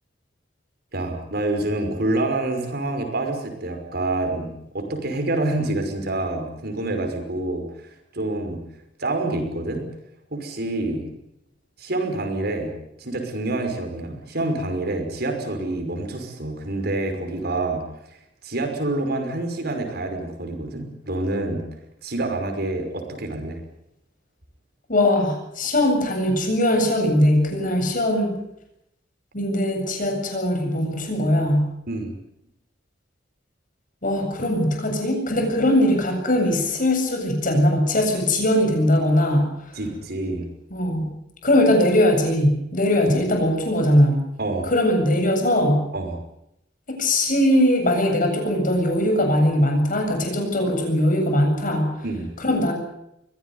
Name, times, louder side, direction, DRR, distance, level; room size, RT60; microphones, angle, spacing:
voice 1, 0.9-8.6 9.0-9.9 10.3-11.1 11.8-12.7 13.0-17.8 18.4-21.7 22.0-23.6 31.9-32.1 39.7-40.5 44.4-44.7 45.9-46.2 52.0-52.3, right 2 dB, 60° right, 5 dB, 5.7 m, -27 dB
voice 2, 24.9-28.4 29.3-31.7 34.0-39.5 40.7-41.1 41.4-44.2 44.6-45.8 46.9-51.9 52.4-52.7, left 1 dB, 45° left, 3 dB, 8.0 m, -20 dB
23.5 x 17.5 x 9.6 m, 0.82 s
head